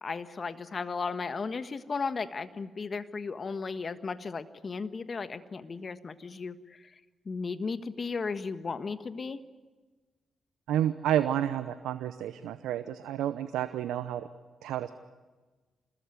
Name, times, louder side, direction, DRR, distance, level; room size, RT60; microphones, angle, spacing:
voice 1, 0.0-6.9 7.2-9.4, left 4 dB, 50° left, 12 dB, 1.5 m, -35 dB
voice 2, 10.7-14.3 14.6-14.9, right 11 dB, 80° right, 12 dB, 0.8 m, -30 dB
26.5 x 20.5 x 9.4 m, 1.3 s
hypercardioid pair, 40°, 0 cm